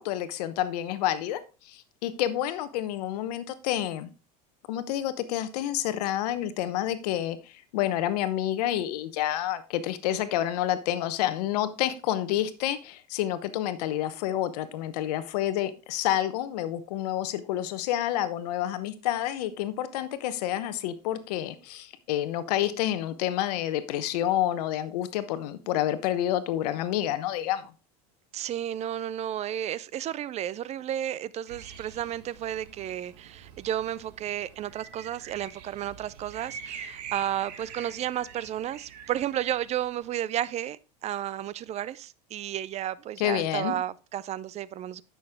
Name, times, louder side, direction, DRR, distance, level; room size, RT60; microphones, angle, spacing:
voice 1, 0.0-4.1 4.7-27.7 43.2-43.7, left 12 dB, 75° left, 0.9 m, -29 dB
voice 2, 28.3-45.0, right 11 dB, 35° right, 0.5 m, -32 dB
sound 1, 31.5-40.1, right 7 dB, 85° right, 1.4 m, -45 dB
9.5 x 6.3 x 3.5 m
supercardioid pair, 105°, 20 cm